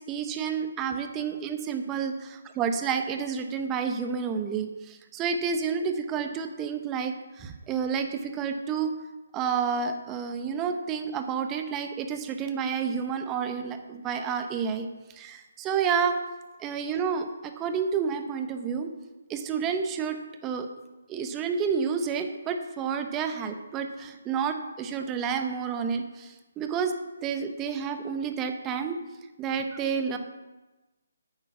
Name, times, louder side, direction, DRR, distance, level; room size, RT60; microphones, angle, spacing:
voice 1, 0.0-8.9 9.3-16.2 16.6-18.9 19.3-20.7 21.1-26.9 27.2-29.0 29.4-30.2, right 6 dB, 15° right, 6 dB, 1.0 m, -30 dB
9.3 x 8.8 x 5.7 m, 1.1 s
figure-of-eight pair, 150°, 0 cm